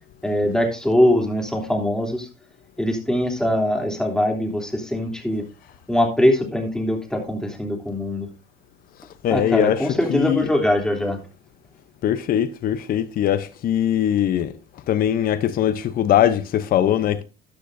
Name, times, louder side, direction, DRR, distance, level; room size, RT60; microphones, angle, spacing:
voice 1, 0.2-2.3 2.8-5.4 5.9-8.3 9.3-11.2, left 1 dB, 5° left, 3.1 m, -22 dB
voice 2, 9.2-9.8 10.1-10.5 12.0-14.6 14.9-17.2, left 10 dB, 60° left, 0.8 m, -21 dB
13.0 x 10.0 x 2.7 m
cardioid pair, 110°, 17 cm